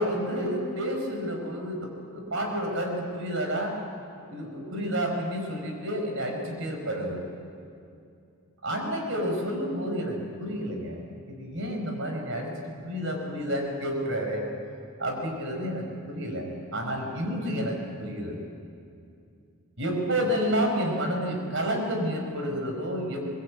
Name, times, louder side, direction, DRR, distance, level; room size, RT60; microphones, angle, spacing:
voice 1, 0.0-3.7 4.3-7.2 8.6-12.5 12.8-14.5 15.0-18.4 19.8-23.4, equal, 60° right, 2 dB, 5.0 m, -30 dB
23.5 x 21.0 x 8.6 m, 2.5 s
head